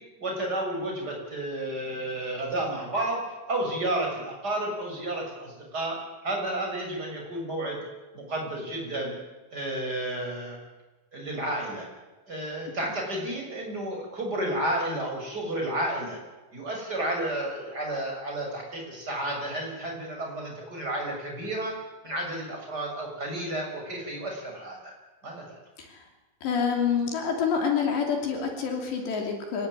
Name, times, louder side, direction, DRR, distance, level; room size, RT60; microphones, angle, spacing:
voice 1, 0.2-3.2 3.5-7.8 8.1-9.2 9.5-10.6 11.1-11.9 12.3-16.2 16.5-21.7 22.0-24.9 25.2-25.6, right 1 dB, 20° right, 0 dB, 7.2 m, -31 dB
voice 2, 26.4-29.7, left 6 dB, 65° left, 2 dB, 5.1 m, -27 dB
25.0 x 19.0 x 9.9 m, 1.2 s
omnidirectional pair, 5.5 m